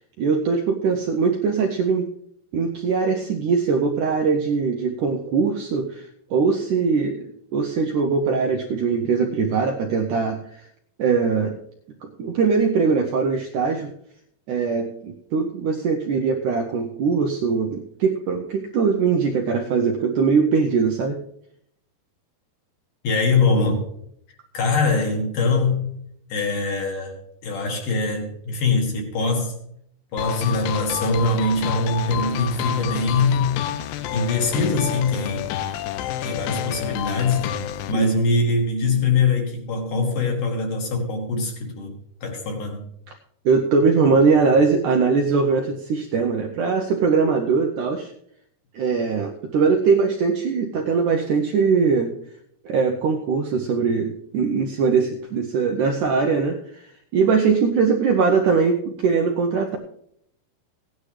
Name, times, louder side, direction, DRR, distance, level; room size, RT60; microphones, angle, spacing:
voice 1, 0.2-2.1 2.5-10.6 11.0-11.6 12.0-13.9 14.5-21.2 37.9-38.1 43.5-48.1 48.7-52.1 52.6-56.9 57.1-59.8, right 5 dB, 75° right, 3 dB, 1.9 m, -21 dB
voice 2, 23.0-23.8 24.5-25.9 26.3-29.5 30.1-33.6 34.1-35.5 36.2-37.5 37.9-42.0 42.2-42.8, left 3 dB, 60° left, 1 dB, 3.1 m, -23 dB
sound 1, 30.2-37.9, left 11 dB, 80° left, 2.1 m, -29 dB
16.5 x 9.8 x 3.2 m, 0.70 s
omnidirectional pair, 4.5 m